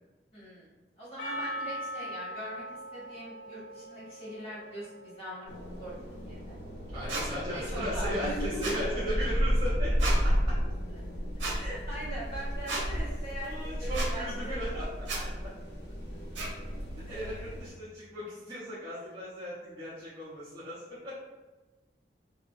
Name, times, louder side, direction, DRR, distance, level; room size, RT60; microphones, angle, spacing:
voice 1, 0.3-0.7 1.0-2.6 2.9-5.5 5.8-5.9 6.3-6.6 7.5-8.9 11.5-14.7 17.1-17.2 19.0-19.1, equal, 30° left, -9 dB, 1.0 m, -40 dB
Percussion, 1.2-5.7, equal, 80° left, 0.4 m, -41 dB
sound 1, 5.4-17.7, equal, 60° left, 1.0 m, -32 dB
voice 2, 6.9-10.5 13.4-15.3 17.1-21.2, equal, 25° right, -13 dB, 0.7 m, -37 dB
sound 2, 7.1-7.3 8.6-8.8 10.0-10.2 11.4-11.6 12.7-12.8 13.9-14.1 15.0-15.2 16.4-16.5, right 3 dB, 85° right, 0.6 m, -33 dB
2.3 x 2.1 x 2.5 m, 1.2 s
head